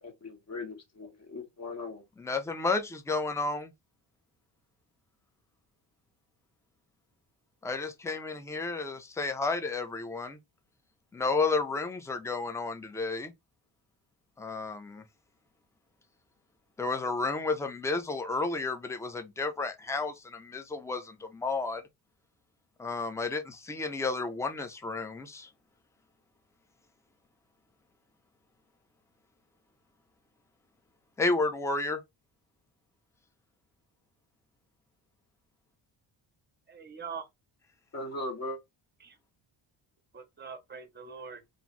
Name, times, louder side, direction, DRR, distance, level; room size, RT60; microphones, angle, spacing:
voice 1, 0.0-2.0 37.9-38.6, left 2 dB, 35° left, 1.0 m, -39 dB
voice 2, 2.2-3.7 7.6-10.4 11.1-13.3 14.4-15.0 16.8-21.8 22.8-25.5 31.2-32.0, left 3 dB, 5° left, 0.4 m, -32 dB
voice 3, 36.7-37.3 39.0-39.2 40.1-41.4, right 6 dB, 20° right, 0.7 m, -43 dB
2.6 x 2.4 x 3.0 m
cardioid pair, 95°, 48 cm